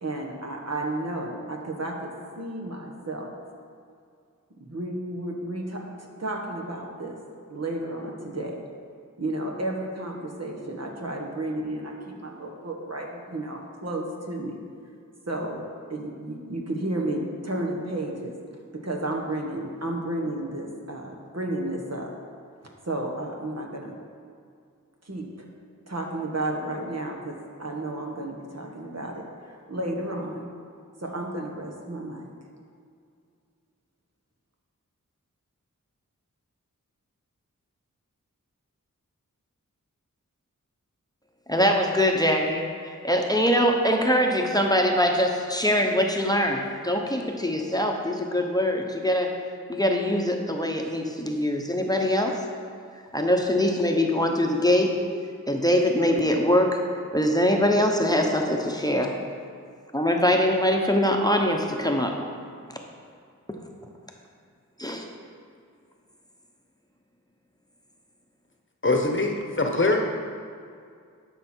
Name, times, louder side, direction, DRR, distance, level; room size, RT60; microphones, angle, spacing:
voice 1, 0.0-3.3 4.6-7.2 7.5-8.6 9.2-14.6 15.3-15.6 15.9-18.3 18.7-22.1 22.8-24.0 25.0-25.5 25.9-30.5 31.0-32.2, right 1 dB, 50° right, 0 dB, 1.5 m, -32 dB
voice 2, 41.5-49.3 49.7-52.4 53.1-54.9 55.5-56.8 57.1-59.1 59.9-62.1 62.7-62.8 64.8-65.1, equal, 10° left, 1 dB, 1.0 m, -23 dB
voice 3, 68.8-70.1, left 2 dB, 35° left, 2 dB, 1.1 m, -23 dB
12.0 x 6.0 x 4.5 m, 2.3 s
wide cardioid pair, 55°, 32 cm